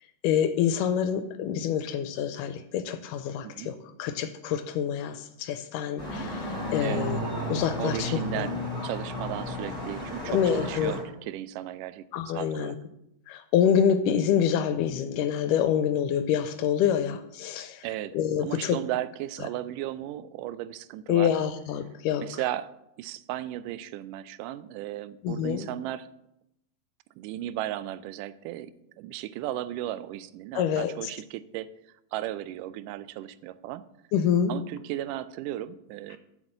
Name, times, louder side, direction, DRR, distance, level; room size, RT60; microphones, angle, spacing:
voice 1, 0.2-3.7 4.0-7.2 7.5-8.5 10.3-10.9 12.1-12.8 13.3-17.9 18.1-18.8 21.1-22.2 25.2-25.7 30.6-31.1 34.1-34.5, left 8 dB, 80° left, 10 dB, 2.1 m, -26 dB
sound 1, 6.0-11.0, left 1 dB, 10° left, 3.2 m, -33 dB
voice 2, 7.8-12.0 12.3-12.7 17.8-18.1 18.4-21.3 22.2-22.7 23.0-26.1 27.2-28.7 29.0-31.7 32.1-33.8 34.5-36.2, right 13 dB, 80° right, 15 dB, 2.0 m, -35 dB
7.3 x 6.6 x 7.8 m, 0.82 s
omnidirectional pair, 3.9 m